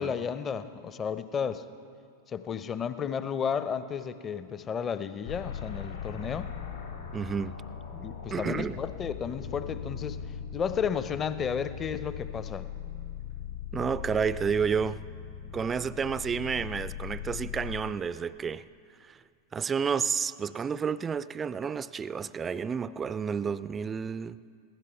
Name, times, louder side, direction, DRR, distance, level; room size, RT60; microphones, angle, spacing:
voice 1, 0.0-1.6 2.3-6.5 7.9-10.2 10.5-12.7, left 7 dB, 25° left, 13 dB, 0.6 m, -33 dB
sound 1, 5.2-17.8, left 8 dB, 70° left, 2.2 m, -40 dB
voice 2, 7.1-7.6 8.3-8.8 13.7-15.0 15.5-18.6 19.1-19.2 19.5-24.4, right 6 dB, 20° right, 17 dB, 0.3 m, -30 dB
22.0 x 16.5 x 3.4 m, 2.3 s
figure-of-eight pair, 90°, 0 cm